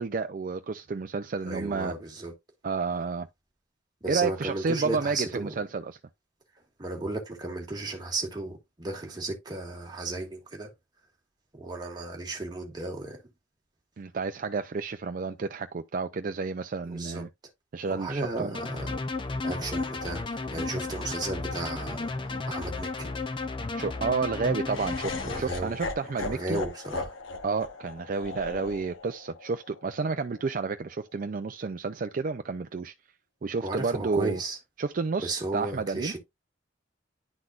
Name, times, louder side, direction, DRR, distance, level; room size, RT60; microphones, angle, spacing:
voice 1, 0.0-1.9 2.6-3.3 4.1-6.0 14.0-17.3 17.7-18.6 23.7-26.6 27.4-32.9 33.4-34.4 34.8-36.1, right 4 dB, 45° right, 0.4 m, -30 dB
voice 2, 1.4-2.3 4.0-5.6 6.8-10.7 11.5-13.2 16.9-17.2 17.8-19.0 19.4-23.1 25.2-25.7 26.2-27.1 33.6-34.6 35.2-36.2, right 2 dB, 20° right, 1.7 m, -34 dB
sound 1, 18.5-25.4, left 3 dB, 25° left, 0.5 m, -33 dB
Laughter, 24.7-30.8, left 3 dB, 80° left, 1.2 m, -38 dB
10.5 x 4.0 x 2.4 m
head